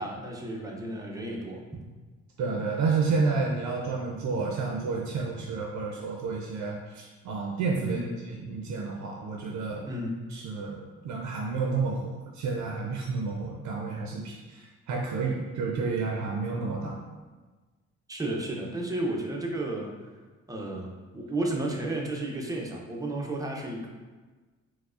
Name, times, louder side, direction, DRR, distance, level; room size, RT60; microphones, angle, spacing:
voice 1, 0.0-1.6 7.8-8.1 9.9-10.2 18.1-19.9 20.5-23.9, right 1 dB, 10° right, -1 dB, 0.5 m, -32 dB
voice 2, 2.4-9.9 10.3-17.0, right 4 dB, 70° right, -1 dB, 0.5 m, -30 dB
4.5 x 2.1 x 2.4 m, 1.3 s
cardioid pair, 90°, 30 cm